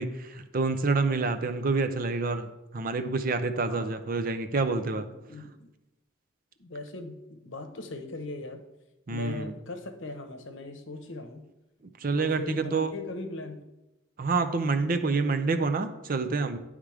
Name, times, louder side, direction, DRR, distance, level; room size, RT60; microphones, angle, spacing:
voice 1, 0.0-5.1 9.1-9.5 12.0-12.9 14.2-16.6, right 3 dB, 45° right, 9 dB, 0.5 m, -28 dB
voice 2, 3.7-4.0 4.9-5.7 6.6-8.6 9.1-11.5 12.1-13.7, left 2 dB, 65° left, 7 dB, 0.8 m, -39 dB
10.0 x 3.6 x 4.9 m, 0.99 s
head